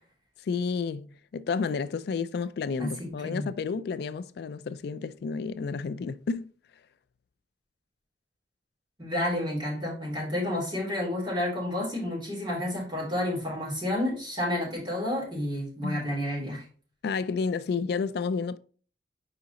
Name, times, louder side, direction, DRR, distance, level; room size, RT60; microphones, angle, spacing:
voice 1, 0.4-6.5 15.8-16.0 17.0-18.6, left 5 dB, 65° left, 0.3 m, -31 dB
voice 2, 2.8-3.5 9.0-16.6, left 1 dB, 25° right, 3.1 m, -30 dB
5.0 x 4.7 x 4.0 m
head